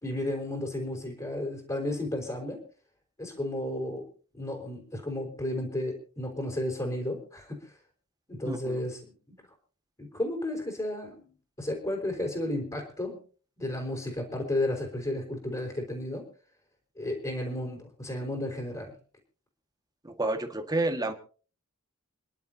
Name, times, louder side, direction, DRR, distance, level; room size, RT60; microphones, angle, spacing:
voice 1, 0.0-2.6 3.2-4.0 4.3-7.7 8.3-9.0 9.3-9.4 10.0-11.3 11.6-13.2 13.6-16.3 17.0-18.9, left 1 dB, 20° left, 0 dB, 4.2 m, -33 dB
voice 2, 8.5-8.8 20.0-21.1, right 2 dB, 20° right, 5 dB, 1.8 m, -30 dB
29.0 x 11.5 x 2.9 m, 0.39 s
head